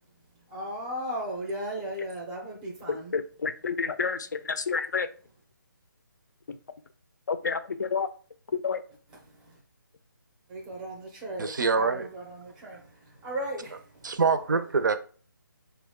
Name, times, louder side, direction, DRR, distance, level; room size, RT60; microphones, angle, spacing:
voice 1, 0.2-3.2 9.3-9.6 10.5-14.2 14.8-14.9, equal, 5° right, 0.5 m, -37 dB
voice 2, 2.9-5.1 6.5-6.6 7.3-8.1 8.5-8.8, left 5 dB, 55° left, 0.4 m, -29 dB
voice 3, 11.4-12.1 14.0-15.0, right 5 dB, 60° right, 0.5 m, -25 dB
4.6 x 2.2 x 3.5 m
figure-of-eight pair, 165°, 12 cm